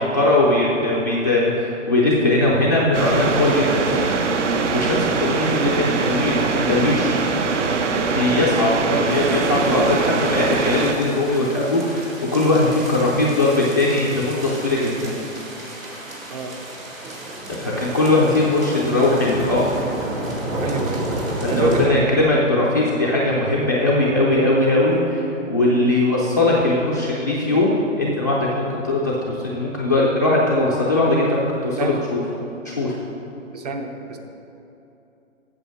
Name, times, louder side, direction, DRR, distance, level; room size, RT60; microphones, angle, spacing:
voice 1, 0.0-4.1 4.7-7.2 8.1-15.1 17.5-19.9 21.4-32.2 32.6-32.9, left 2 dB, 15° left, -6 dB, 0.3 m, -20 dB
sound 1, 2.9-10.9, right 4 dB, 65° right, 0.9 m, -22 dB
sound 2, 9.1-21.9, right 1 dB, 90° right, 2.2 m, -31 dB
voice 2, 20.6-21.2 21.5-22.6 23.2-23.5 25.7-25.9 31.8-32.0 33.5-34.2, right 4 dB, 30° right, 5 dB, 0.7 m, -27 dB
8.4 x 6.7 x 6.2 m, 2.9 s
hypercardioid pair, 140°, 39 cm